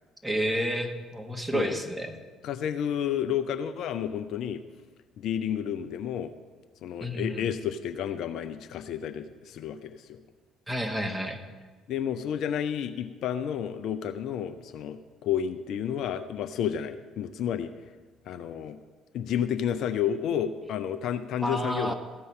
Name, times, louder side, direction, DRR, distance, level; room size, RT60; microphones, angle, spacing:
voice 1, 0.2-2.1 7.0-7.5 10.7-11.4 21.4-21.9, equal, 10° right, 4 dB, 1.5 m, -30 dB
voice 2, 2.4-4.6 5.2-6.3 6.8-10.2 11.9-17.7 18.3-18.8 19.1-21.9, left 9 dB, 55° left, 9 dB, 0.5 m, -31 dB
14.0 x 5.5 x 7.5 m, 1.4 s
figure-of-eight pair, 50°, 0 cm